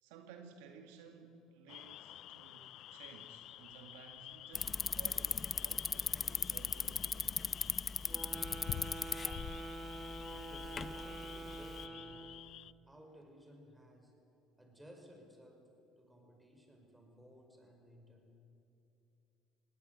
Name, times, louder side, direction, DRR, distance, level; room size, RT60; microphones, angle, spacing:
voice 1, 0.0-7.5, right 6 dB, 85° right, 2.0 m, -56 dB
sound 1, 1.7-12.7, left 13 dB, 60° left, 0.4 m, -50 dB
Bicycle, 4.5-11.9, left 5 dB, 30° left, 0.9 m, -39 dB
sound 2, 8.1-12.6, right 2 dB, 25° right, 1.6 m, -47 dB
voice 2, 10.5-12.4 12.9-14.2 14.6-15.7 16.0-18.4, equal, 5° right, 5.5 m, -58 dB
19.0 x 18.0 x 9.5 m
supercardioid pair, 85°, 0 cm